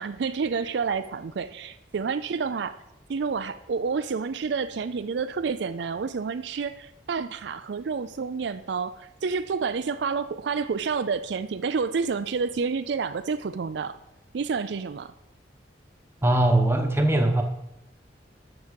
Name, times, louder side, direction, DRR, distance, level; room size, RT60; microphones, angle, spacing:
voice 1, 0.0-2.8 3.1-14.0 14.3-15.1, right 5 dB, 70° right, 11 dB, 0.4 m, -29 dB
voice 2, 16.2-17.4, right 1 dB, 15° right, 4 dB, 1.1 m, -21 dB
13.0 x 6.0 x 5.2 m, 0.87 s
head